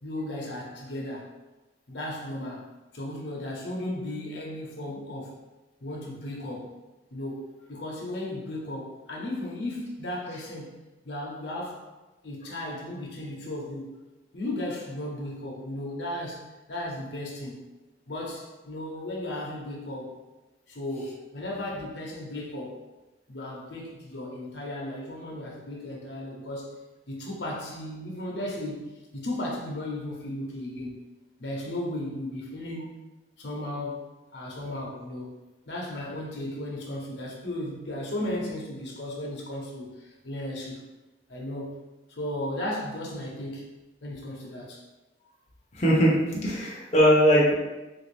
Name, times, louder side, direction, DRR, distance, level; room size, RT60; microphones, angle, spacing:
voice 1, 0.0-1.3 1.9-2.7 2.9-5.4 5.8-6.8 7.1-11.8 12.2-13.9 14.3-17.6 18.1-20.2 20.7-22.8 23.3-26.7 27.1-30.9 31.4-33.0 33.4-34.1 34.3-35.3 35.7-40.8 41.3-41.7 42.1-43.7 44.0-44.8, left 1 dB, 70° left, -3 dB, 0.7 m, -35 dB
voice 2, 45.7-47.5, equal, 35° left, -5 dB, 0.7 m, -20 dB
3.4 x 2.5 x 3.2 m, 1.1 s
head